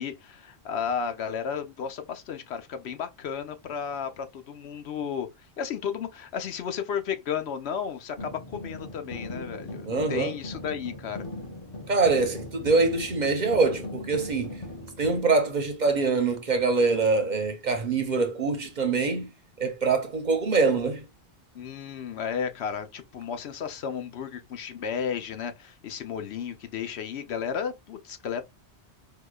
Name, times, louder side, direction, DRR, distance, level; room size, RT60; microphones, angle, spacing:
voice 1, 0.0-5.3 5.6-11.3 21.5-28.4, left 7 dB, 75° left, 0.9 m, -33 dB
sound 1, 8.2-15.2, left 1 dB, 35° left, 0.9 m, -39 dB
voice 2, 9.8-10.3 11.9-14.5 15.0-19.3 19.6-21.0, right 4 dB, 50° right, 0.7 m, -24 dB
4.7 x 2.3 x 2.2 m
omnidirectional pair, 1.1 m